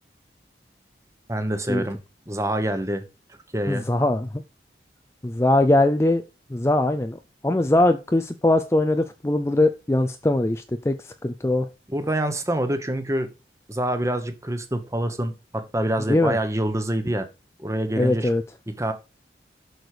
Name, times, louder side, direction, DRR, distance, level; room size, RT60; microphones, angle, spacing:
voice 1, 1.3-2.0 2.3-3.0 3.5-3.9 11.9-13.3 13.7-17.3 17.6-18.3 18.8-18.9, right 1 dB, 15° right, 1.1 m, -26 dB
voice 2, 3.7-4.4 5.2-6.2 6.5-7.2 7.4-11.7 16.1-16.4 18.0-18.4, left 1 dB, 15° left, 0.4 m, -21 dB
7.9 x 6.4 x 5.0 m
head